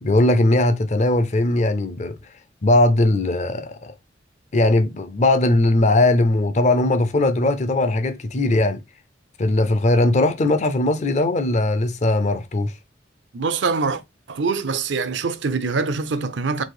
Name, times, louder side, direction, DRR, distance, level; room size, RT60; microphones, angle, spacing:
voice 1, 0.0-2.2 2.6-3.9 4.5-8.8 9.4-12.7, left 2 dB, 40° left, 0.5 m, -19 dB
voice 2, 13.3-14.0 14.3-16.6, right 4 dB, 80° right, 0.6 m, -24 dB
4.0 x 2.6 x 4.7 m
head